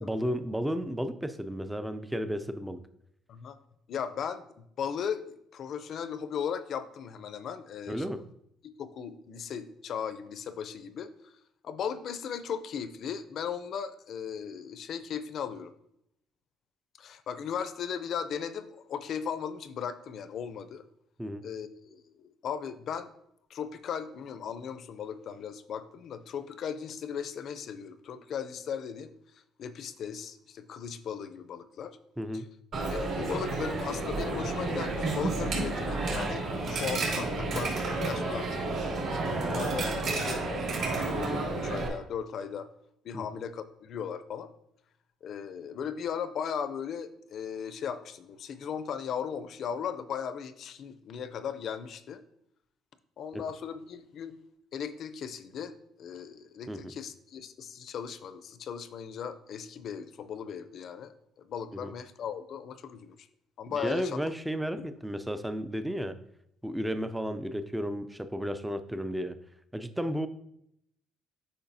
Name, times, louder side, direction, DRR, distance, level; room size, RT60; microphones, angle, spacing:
voice 1, 0.0-2.8 7.9-8.2 21.2-21.4 32.2-32.5 43.1-43.2 53.3-53.4 56.7-56.9 61.7-61.9 63.7-66.2 66.6-69.4 69.7-70.3, equal, 5° right, 10 dB, 0.4 m, -33 dB
voice 2, 3.9-8.1 8.6-11.3 11.6-15.7 17.0-20.8 21.4-23.1 23.5-29.1 29.6-32.0 32.3-32.4 32.9-36.5 36.7-40.5 40.9-42.7 43.0-44.5 45.2-52.2 53.2-54.4 54.7-63.3 63.6-64.2 64.8-65.0, left 7 dB, 55° left, 12 dB, 0.5 m, -37 dB
Coin (dropping), 32.7-41.9, right 2 dB, 60° right, 2.5 m, -31 dB
8.6 x 5.1 x 2.7 m, 0.76 s
cardioid pair, 110°, 0 cm